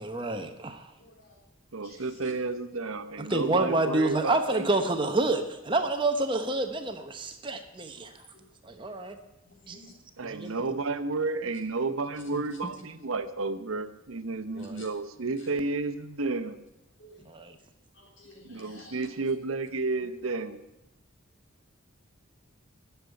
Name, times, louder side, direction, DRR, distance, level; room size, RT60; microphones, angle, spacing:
voice 1, 0.0-0.9 3.2-8.1 8.6-9.2 9.7-9.8 10.2-10.7 12.3-12.7 14.6-14.8 17.3-17.6, right 2 dB, 25° right, 7 dB, 0.9 m, -29 dB
voice 2, 1.0-1.4 1.8-2.3 8.0-8.1 8.3-8.4 9.5-9.9 10.4-10.6 14.5-14.9 15.4-15.5 17.0-17.2 18.0-19.1, left 2 dB, 65° left, 0 dB, 3.5 m, -53 dB
voice 3, 1.7-4.7 10.2-16.6 18.4-20.6, right 3 dB, 90° right, 10 dB, 0.9 m, -32 dB
11.5 x 7.1 x 9.6 m, 0.93 s
head